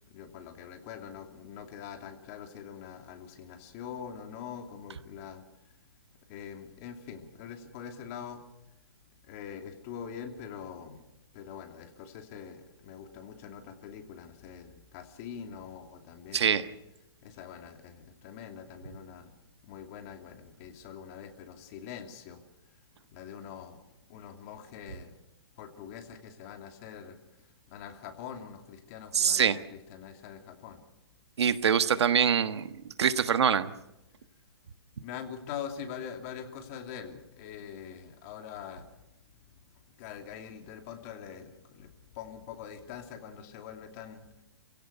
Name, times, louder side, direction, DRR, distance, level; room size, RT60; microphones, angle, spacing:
voice 1, 0.1-5.4 6.3-8.4 9.3-11.0 11.3-16.6 17.2-19.3 19.6-22.4 23.1-23.8 24.1-25.1 25.6-27.2 27.7-30.8 35.0-38.9 40.0-44.4, left 8 dB, 30° left, 5 dB, 2.7 m, -44 dB
voice 2, 16.3-16.7 29.1-29.6 31.4-32.7 33.0-33.7, right 7 dB, 75° right, 11 dB, 1.5 m, -24 dB
28.5 x 16.5 x 6.8 m, 0.94 s
hypercardioid pair, 160°, 14 cm